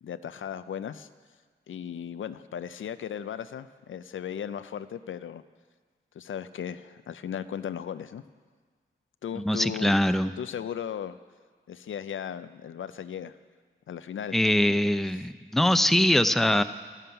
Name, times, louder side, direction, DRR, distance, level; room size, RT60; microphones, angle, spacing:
voice 1, 0.0-1.1 1.7-5.4 6.1-8.2 9.2-9.9 10.4-11.2 11.7-13.3 13.9-14.4, left 8 dB, 80° left, 13 dB, 0.4 m, -36 dB
voice 2, 9.4-10.3 14.3-16.6, left 1 dB, ahead, 12 dB, 0.5 m, -23 dB
11.0 x 9.1 x 5.7 m, 1.5 s
cardioid pair, 40°, 20 cm